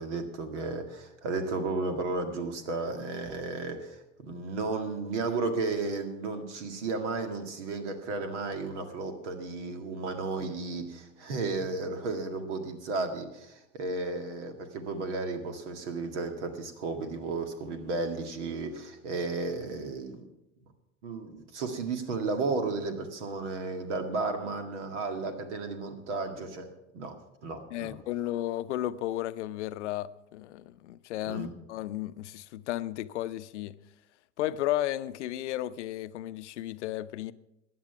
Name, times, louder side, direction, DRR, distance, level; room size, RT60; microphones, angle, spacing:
voice 1, 0.0-20.3 21.0-26.7 26.9-27.2 27.4-28.0 31.3-31.5, right 3 dB, 70° right, 2.0 m, -33 dB
voice 2, 27.7-33.8 34.4-37.3, left 14 dB, 70° left, 0.6 m, -34 dB
15.5 x 10.5 x 5.8 m
figure-of-eight pair, 75°, 37 cm